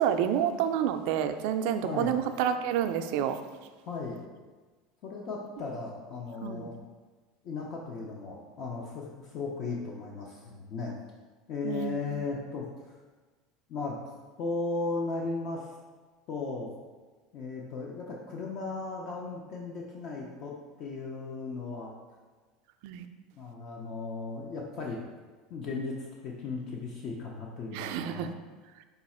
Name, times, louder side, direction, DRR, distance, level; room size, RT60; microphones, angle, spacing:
voice 1, 0.0-3.4 6.4-6.7 11.6-12.1 22.8-23.1 27.7-28.3, right 9 dB, 70° right, 8 dB, 0.3 m, -29 dB
voice 2, 1.8-2.1 3.9-4.2 5.0-6.7 7.4-11.0 11.5-12.6 13.7-14.0 14.4-15.7 16.3-16.7 17.3-20.5 20.8-21.9 22.9-23.0 23.4-25.0 25.5-28.3, left 3 dB, 50° left, -1 dB, 0.6 m, -36 dB
5.2 x 2.4 x 4.2 m, 1.3 s
supercardioid pair, 135°, 0 cm